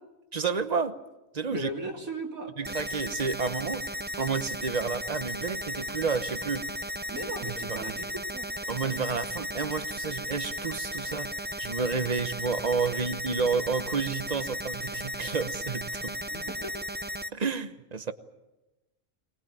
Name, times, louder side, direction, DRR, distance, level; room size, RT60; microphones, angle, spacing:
voice 1, 0.3-1.0 1.3-1.7 2.6-3.9 4.2-6.7 7.4-7.9 8.7-11.3 11.6-16.2 17.3-18.1, right 5 dB, 35° right, 1.0 m, -30 dB
voice 2, 1.5-2.5 7.1-8.1 8.3-8.5 16.3-16.7, right 1 dB, 85° right, 3.2 m, -36 dB
sound 1, 2.6-17.3, equal, 10° right, 0.5 m, -35 dB
23.5 x 20.0 x 8.9 m
omnidirectional pair, 1.4 m